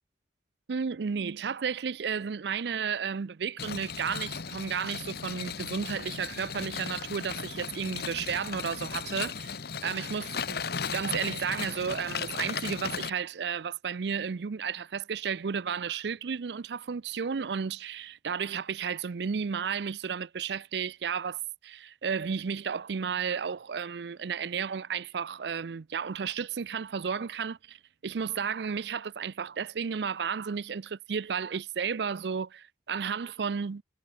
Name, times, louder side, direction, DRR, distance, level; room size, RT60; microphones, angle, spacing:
voice 1, 0.7-9.6 9.8-27.8 28.0-33.8, right 6 dB, 70° right, 0.5 m, -33 dB
sound 1, 3.6-13.1, left 6 dB, 60° left, 1.1 m, -36 dB
head